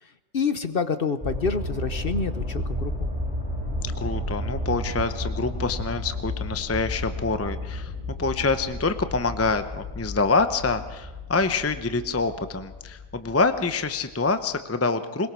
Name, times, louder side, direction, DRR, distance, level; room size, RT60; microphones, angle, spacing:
voice 1, 0.0-3.1, left 5 dB, 45° left, 10 dB, 1.0 m, -28 dB
sound 1, 1.2-13.9 14.4-14.5, left 1 dB, 5° right, 5.1 m, -32 dB
voice 2, 4.0-7.9 8.2-15.3, left 3 dB, 15° left, 10 dB, 0.6 m, -26 dB
21.5 x 21.0 x 6.2 m, 1.2 s
omnidirectional pair, 1.5 m